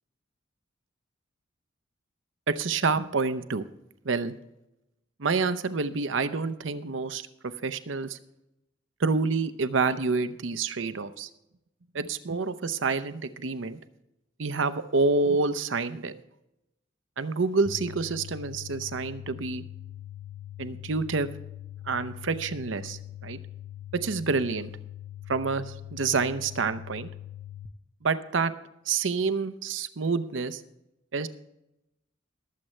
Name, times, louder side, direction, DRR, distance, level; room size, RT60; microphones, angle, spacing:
voice 1, 2.5-3.7 4.0-4.3 5.2-8.2 9.0-11.3 11.9-13.8 14.4-16.1 17.2-19.6 20.6-21.3 21.9-23.4 23.9-24.7 25.3-27.1 28.0-28.5 28.9-30.6 31.1-31.3, right 4 dB, 70° right, 12 dB, 0.7 m, -28 dB
sound 1, 17.7-27.7, left 12 dB, 60° left, 0.7 m, -42 dB
21.0 x 7.6 x 3.2 m, 0.89 s
head